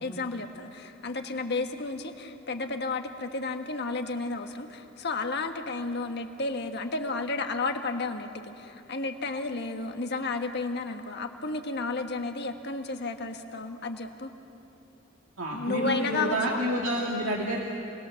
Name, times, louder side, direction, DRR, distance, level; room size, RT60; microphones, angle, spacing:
voice 1, 0.0-14.3 15.5-16.6, left 3 dB, 55° left, 5 dB, 1.5 m, -32 dB
voice 2, 15.4-17.6, equal, 80° right, -2 dB, 2.2 m, -29 dB
27.5 x 20.5 x 7.1 m, 3.0 s
head